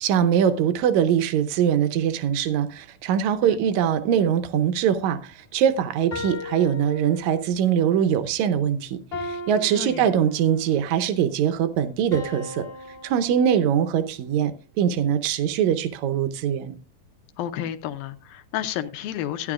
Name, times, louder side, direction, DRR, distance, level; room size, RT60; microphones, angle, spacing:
voice 1, 0.0-12.7 13.0-16.8, right 9 dB, 85° right, 1.6 m, -22 dB
sound 1, 6.1-7.7 9.1-10.8 12.1-14.0, left 2 dB, 30° left, 1.0 m, -37 dB
voice 2, 9.7-10.1 17.4-19.5, left 11 dB, 75° left, 2.4 m, -31 dB
14.5 x 10.0 x 2.4 m
omnidirectional pair, 4.4 m